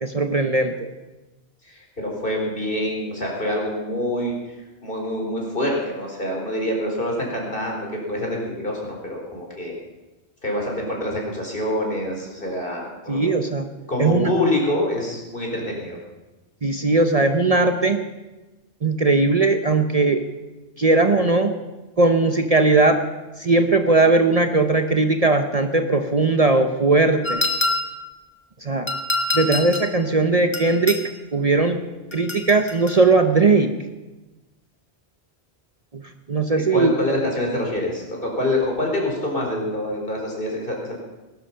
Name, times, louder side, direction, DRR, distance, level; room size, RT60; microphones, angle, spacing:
voice 1, 0.0-0.9 13.1-13.7 14.0-14.3 16.6-18.0 18.8-20.2 20.8-21.5 22.0-23.0 23.4-27.5 28.6-28.9 29.3-31.0 31.3-31.8 32.1-33.7 35.9-36.0 36.3-36.9, right 3 dB, 35° right, 7 dB, 0.9 m, -19 dB
voice 2, 1.6-9.7 10.4-13.2 13.9-16.0 36.7-41.0, left 1 dB, 50° left, 0 dB, 4.1 m, -26 dB
sound 1, 27.2-28.1 28.9-29.9 30.5-31.1 32.1-33.0, left 2 dB, 25° left, 1.5 m, -26 dB
19.0 x 12.0 x 5.7 m, 1.1 s
omnidirectional pair, 1.1 m